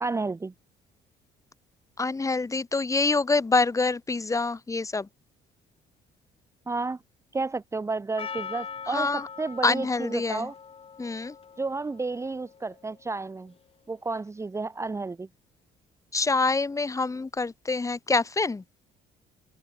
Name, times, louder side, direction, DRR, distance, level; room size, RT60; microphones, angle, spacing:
voice 1, 0.0-0.5 6.7-7.0 7.3-10.5 11.6-13.5 13.9-15.3, right 3 dB, 15° right, 1.0 m, -31 dB
voice 2, 2.0-5.1 8.9-9.3 9.6-10.5 11.0-11.4 16.1-18.6, left 3 dB, 20° left, 1.9 m, -26 dB
Percussion, 8.2-13.1, left 6 dB, 35° left, 3.6 m, -42 dB
open air
cardioid pair, 110°, 17 cm